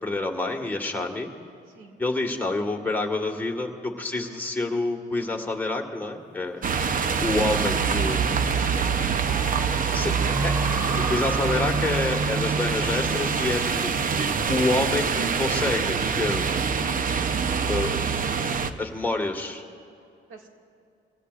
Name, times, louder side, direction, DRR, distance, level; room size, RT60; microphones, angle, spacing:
voice 1, 0.0-1.3 2.0-6.6 7.2-8.3 9.9-10.6 11.1-13.9 14.5-16.5 17.7-18.0 18.8-19.6, left 2 dB, 10° left, 1 dB, 1.7 m, -28 dB
voice 2, 1.7-2.0 10.9-11.0 20.3-20.5, right 4 dB, 90° right, 1 dB, 2.1 m, -46 dB
sound 1, 6.3-15.2, left 1 dB, 10° right, 2.1 m, -40 dB
sound 2, 6.6-18.7, right 5 dB, 45° right, 0.8 m, -25 dB
24.0 x 17.0 x 2.5 m, 2.4 s
cardioid pair, 90°, 20 cm